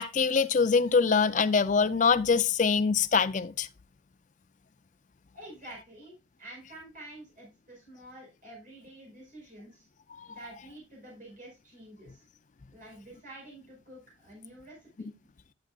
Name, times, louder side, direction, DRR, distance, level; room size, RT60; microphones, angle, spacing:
voice 1, 0.0-3.7 10.1-10.3, left 5 dB, 40° left, 0.4 m, -24 dB
voice 2, 5.3-9.9 10.3-12.2 12.7-15.1, right 1 dB, 45° right, 5.2 m, -49 dB
10.5 x 8.5 x 2.4 m
head